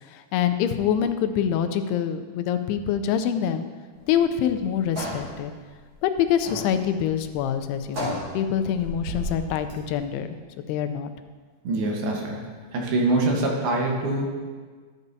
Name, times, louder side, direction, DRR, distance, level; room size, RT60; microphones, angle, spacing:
voice 1, 0.1-3.7 4.1-5.5 6.0-10.3 10.6-11.1, left 9 dB, 85° left, 8 dB, 2.5 m, -25 dB
sound 1, 3.9-10.1, equal, 35° right, 2.6 m, -35 dB
voice 2, 11.6-12.4 12.7-14.3, right 2 dB, 75° right, 0 dB, 2.9 m, -24 dB
13.0 x 8.4 x 2.7 m, 1.5 s
omnidirectional pair, 4.7 m